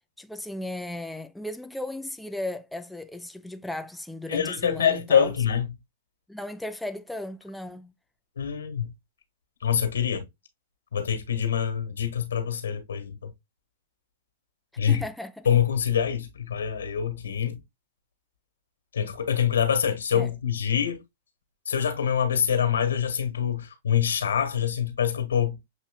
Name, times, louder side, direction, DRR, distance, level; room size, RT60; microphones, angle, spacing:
voice 1, 0.2-5.3 6.3-7.9 14.9-15.5 20.1-20.3, left 1 dB, 5° left, 0.4 m, -36 dB
voice 2, 4.3-5.7 8.4-8.9 9.6-10.3 10.9-13.3 14.8-15.0 15.4-17.6 18.9-21.0 21.7-25.6, left 8 dB, 85° left, 1.4 m, -25 dB
7.0 x 3.1 x 2.2 m
hypercardioid pair, 120°, 0 cm